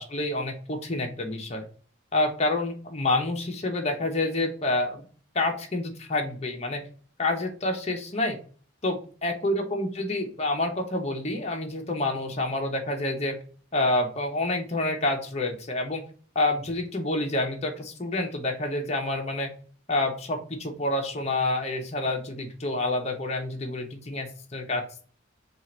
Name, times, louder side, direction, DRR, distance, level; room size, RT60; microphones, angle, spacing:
voice 1, 0.0-1.7 2.1-5.1 5.3-6.8 7.2-8.4 8.8-13.4 13.7-16.0 16.3-19.5 19.9-25.0, left 2 dB, 30° left, 3 dB, 0.9 m, -28 dB
4.6 x 2.5 x 4.3 m, 0.43 s
head